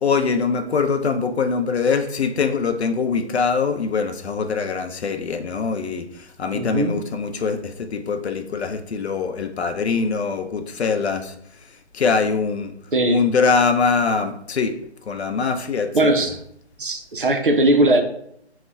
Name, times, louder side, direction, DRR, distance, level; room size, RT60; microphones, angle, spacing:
voice 1, 0.0-11.3 11.9-12.7 13.1-14.7 15.1-16.1, left 5 dB, 70° left, 6 dB, 0.6 m, -23 dB
voice 2, 6.5-7.0 12.9-13.2 15.9-16.4 16.8-18.0, right 1 dB, 50° right, 5 dB, 0.4 m, -19 dB
5.5 x 2.1 x 2.3 m, 0.72 s
hypercardioid pair, 175°, 33 cm